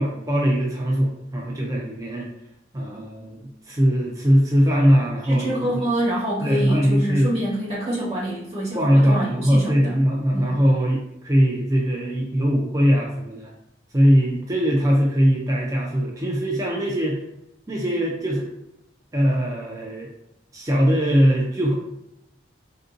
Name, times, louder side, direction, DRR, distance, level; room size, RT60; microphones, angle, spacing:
voice 1, 0.0-2.3 2.7-3.4 3.7-5.7 6.4-7.3 8.7-13.5 13.9-17.2 17.7-18.5 19.1-20.1 20.5-21.8, equal, 20° right, -2 dB, 0.4 m, -20 dB
voice 2, 5.2-10.0 10.3-10.6, right 1 dB, 35° right, -7 dB, 1.4 m, -26 dB
3.6 x 2.6 x 2.5 m, 0.82 s
head